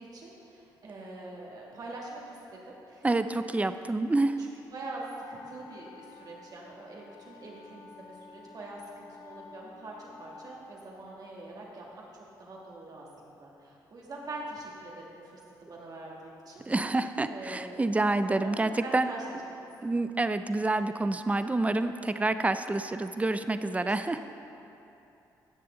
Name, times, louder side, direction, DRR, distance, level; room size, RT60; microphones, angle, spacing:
voice 1, 0.0-3.1 4.4-5.0 5.3-12.0 12.4-16.7 17.3-17.8 18.3-19.2 19.5-19.7 23.7-24.0, right 2 dB, 55° right, -3 dB, 2.3 m, -44 dB
voice 2, 3.0-4.4 16.7-19.1 19.8-24.2, right 2 dB, 15° right, 10 dB, 0.5 m, -28 dB
sound 1, 5.1-10.6, left 5 dB, 60° left, 0.9 m, -52 dB
16.0 x 6.8 x 3.8 m, 2.9 s
supercardioid pair, 60°, 8 cm